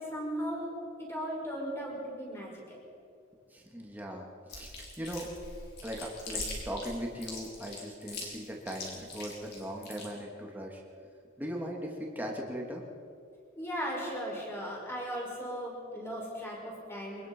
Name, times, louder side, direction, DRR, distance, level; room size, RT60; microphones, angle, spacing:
voice 1, 0.0-2.8 13.6-17.3, equal, 15° left, -2 dB, 5.9 m, -37 dB
voice 2, 3.5-5.3 5.8-10.8 11.4-12.8, equal, 10° right, -1 dB, 2.8 m, -39 dB
Chewing mastication, 4.5-10.1, left 3 dB, 55° left, 5.4 m, -41 dB
24.5 x 21.0 x 5.6 m, 2.4 s
head